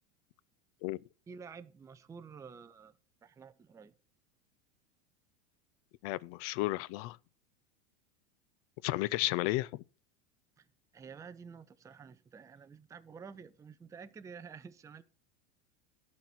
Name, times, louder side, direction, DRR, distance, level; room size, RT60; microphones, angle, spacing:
voice 1, 1.3-3.9 10.6-10.7 10.9-15.0, right 6 dB, 10° right, 0.4 m, -50 dB
voice 2, 6.0-7.2 8.8-9.8, left 19 dB, 55° left, 0.5 m, -33 dB
12.0 x 4.3 x 7.8 m
supercardioid pair, 120°, 37 cm